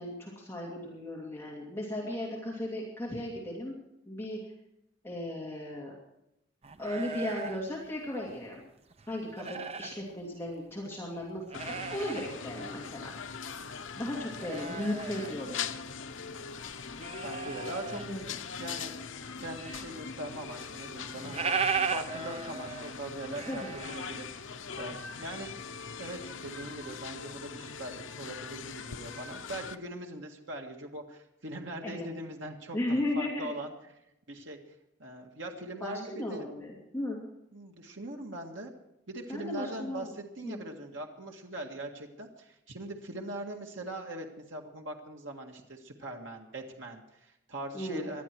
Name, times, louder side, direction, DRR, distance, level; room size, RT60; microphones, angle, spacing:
voice 1, 0.0-3.8 4.1-4.4 5.0-5.9 6.8-8.6 9.1-11.4 11.7-13.1 14.0-15.6 17.9-18.3 23.5-23.7 31.8-32.1 32.7-33.5 35.8-37.2 39.3-40.1 40.4-40.6 47.7-48.1, left 1 dB, 15° left, -4 dB, 2.7 m, -36 dB
sound 1, 6.6-8.6 8.9-10.0 10.5-10.6 11.2-12.3 12.7-12.8 13.2-16.2 16.4-18.4 18.8-20.0 20.2-20.3 20.6-20.7 20.9-24.8 25.1-25.6, right 5 dB, 30° right, 0.7 m, -37 dB
sound 2, 11.5-29.7, left 6 dB, 80° left, 0.8 m, -41 dB
voice 2, 17.2-18.0 18.6-19.0 19.3-21.5 21.9-25.5 26.0-33.7 34.3-34.6 35.0-36.5 37.5-38.7 39.1-48.2, right 1 dB, 80° right, 1 dB, 1.8 m, -41 dB
19.5 x 12.5 x 4.6 m, 0.84 s
head